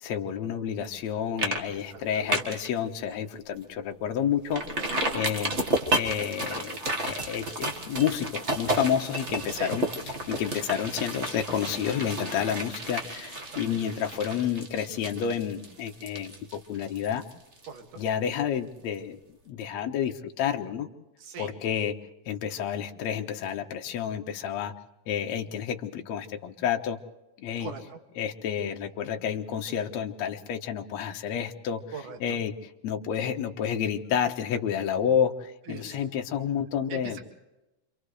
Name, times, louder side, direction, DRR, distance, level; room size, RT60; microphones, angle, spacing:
voice 1, 0.0-4.6 5.1-5.5 5.9-9.8 10.3-17.2 18.0-19.2 19.5-20.9 21.4-21.9 22.3-24.7 25.1-27.0 27.4-27.7 28.2-31.8 32.2-32.5 32.8-37.2, left 8 dB, 60° left, 4 dB, 2.2 m, -30 dB
sound 1, 0.8-1.1 1.4-1.6 1.9-2.7 3.1-3.2 3.6-3.7 4.5-18.1 18.4-18.5, right 1 dB, 40° right, 0.9 m, -32 dB
voice 2, 1.7-2.5 5.1-5.3 9.5-9.7 13.3-13.7 17.7-18.0 21.2-21.5 27.6-28.0 31.9-32.4 35.7-36.1 36.9-37.2, right 5 dB, 60° right, 3 dB, 3.6 m, -41 dB
30.0 x 26.5 x 3.3 m, 1.0 s
omnidirectional pair, 4.1 m